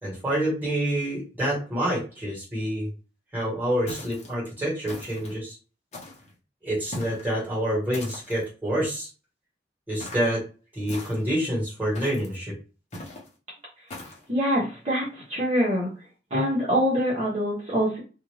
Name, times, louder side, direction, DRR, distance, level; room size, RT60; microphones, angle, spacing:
voice 1, 0.0-2.9 3.3-5.6 6.6-9.1 9.9-10.4 10.7-12.5, right 1 dB, 10° right, -6 dB, 1.4 m, -27 dB
sound 1, 3.9-4.3 4.9-5.4 5.9-6.3 6.9-7.3 7.9-8.5 10.0-10.3 10.9-11.4 11.9-12.4 12.9-13.3 13.9-14.2, left 1 dB, 40° left, 0.9 m, -40 dB
voice 2, 14.3-15.9 16.3-18.0, equal, 35° right, -6 dB, 1.0 m, -24 dB
2.5 x 2.4 x 3.1 m, 0.33 s
head